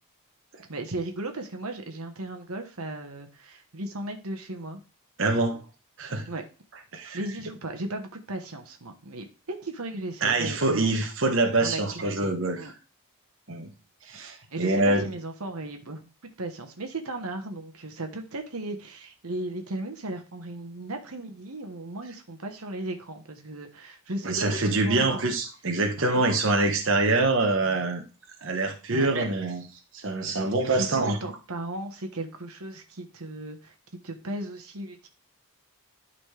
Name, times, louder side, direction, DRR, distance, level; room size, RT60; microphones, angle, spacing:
voice 1, 0.7-4.8 6.3-6.4 6.9-10.9 11.6-12.7 14.5-25.2 26.0-26.2 28.9-29.1 30.7-33.7 34.0-35.1, right 2 dB, 80° right, 1.3 m, -36 dB
voice 2, 5.2-5.6 6.0-6.3 6.9-7.2 10.2-12.6 13.5-13.7 14.0-15.1 24.2-28.0 28.4-29.7 29.9-31.2, right 2 dB, 60° right, 1.2 m, -25 dB
12.0 x 4.2 x 3.4 m
head